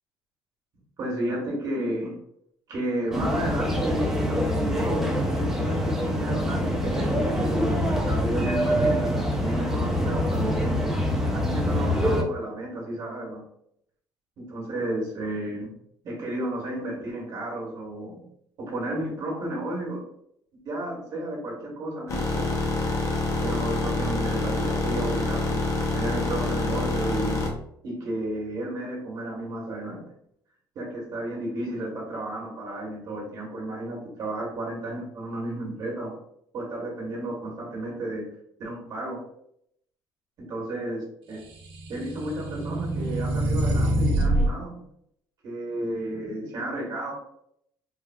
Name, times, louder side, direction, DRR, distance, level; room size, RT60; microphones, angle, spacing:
voice 1, 1.0-2.2 2.7-9.0 9.4-10.9 11.3-13.4 14.4-15.7 16.0-18.2 18.6-20.1 20.6-22.5 23.4-25.7 25.9-27.4 27.8-30.0 30.7-36.1 36.5-38.3 38.6-39.2 40.5-41.0 41.3-41.4 41.9-44.8 45.4-47.1, right 1 dB, 50° right, -2 dB, 1.2 m, -32 dB
sound 1, 3.1-12.2, equal, 5° right, 0.4 m, -25 dB
sound 2, 22.1-27.5, left 2 dB, 40° left, 0.6 m, -26 dB
sound 3, 41.6-44.5, right 1 dB, 85° right, 0.6 m, -25 dB
3.3 x 2.3 x 2.2 m, 0.73 s
cardioid pair, 145°, 8 cm